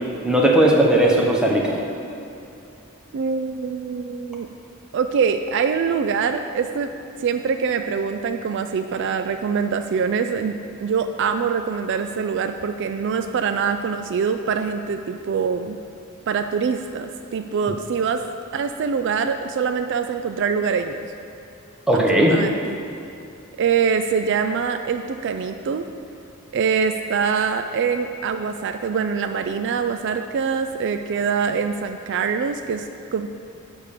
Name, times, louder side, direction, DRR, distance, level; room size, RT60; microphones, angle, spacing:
voice 1, 0.2-1.8 21.9-22.4, right 1 dB, 5° right, -3 dB, 1.0 m, -17 dB
voice 2, 3.1-4.5 4.9-6.9 7.2-15.8 16.3-18.2 18.5-21.1 21.9-22.8 23.6-25.9 26.5-33.3, right 6 dB, 60° right, 7 dB, 0.3 m, -24 dB
10.5 x 3.6 x 6.7 m, 2.8 s
head